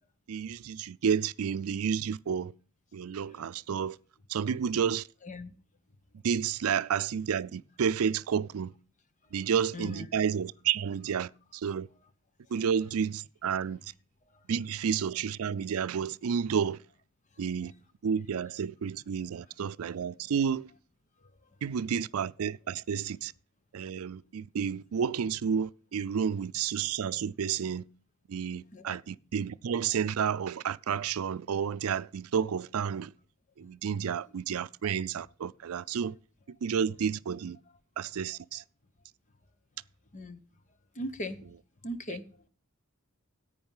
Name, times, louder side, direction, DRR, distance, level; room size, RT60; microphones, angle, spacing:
voice 1, 0.3-2.5 2.9-4.0 4.3-5.0 6.2-8.7 9.3-11.3 11.6-11.9 12.5-13.8 14.5-16.8 17.4-17.7 18.0-20.7 21.6-23.3 23.7-27.8 28.3-33.1 33.6-36.1 36.6-37.6 38.0-38.6, right 7 dB, 85° right, 0.4 m, -30 dB
voice 2, 5.2-5.5 9.4-10.1 28.7-29.0 40.1-40.4 40.9-41.4 41.8-42.5, left 1 dB, 35° left, 1.0 m, -39 dB
10.5 x 8.7 x 5.5 m
head